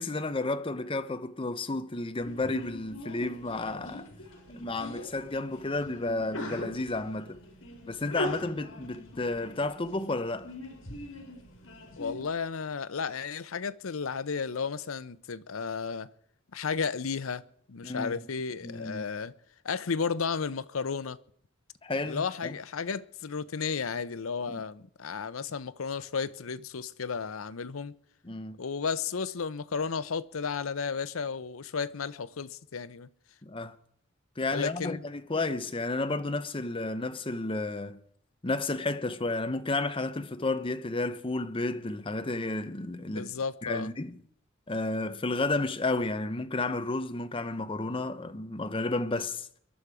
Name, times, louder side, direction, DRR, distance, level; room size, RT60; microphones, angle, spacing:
voice 1, 0.0-4.1 4.5-7.4 7.9-10.5 17.8-18.1 18.6-19.1 21.8-22.6 24.5-24.6 28.2-28.6 33.4-33.8 34.4-38.0 38.4-43.3 43.6-44.2 44.7-49.5, left 2 dB, 25° left, 0.8 m, -32 dB
Sneeze, 2.2-12.2, left 1 dB, 65° left, 4.4 m, -41 dB
voice 2, 11.9-16.1 16.5-17.4 17.7-19.3 19.6-21.2 22.0-27.9 28.6-33.1 34.5-35.0 43.1-43.9, left 5 dB, 90° left, 0.7 m, -33 dB
22.0 x 11.5 x 4.9 m
head